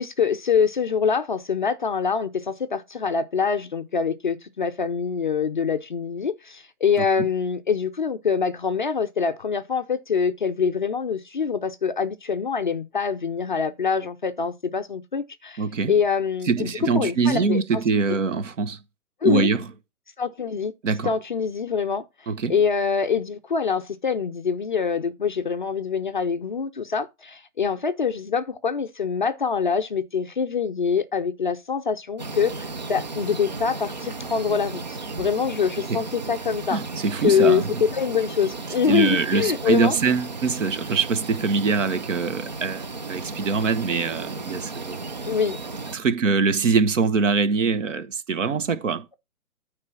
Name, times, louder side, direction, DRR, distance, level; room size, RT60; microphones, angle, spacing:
voice 1, 0.0-16.7 16.9-17.8 18.1-18.2 19.2-19.5 20.2-20.7 21.0-22.0 22.5-36.8 37.2-40.0 45.2-45.6, left 6 dB, 35° left, 0.5 m, -25 dB
voice 2, 15.6-15.9 16.5-18.8 19.2-19.6 20.8-21.1 22.3-22.6 35.9-36.0 36.7-37.8 38.9-45.0 45.9-49.0, right 5 dB, 55° right, 1.3 m, -23 dB
sound 1, 32.2-46.0, right 3 dB, 30° right, 0.4 m, -35 dB
9.4 x 3.4 x 5.6 m
hypercardioid pair, 145°, 45 cm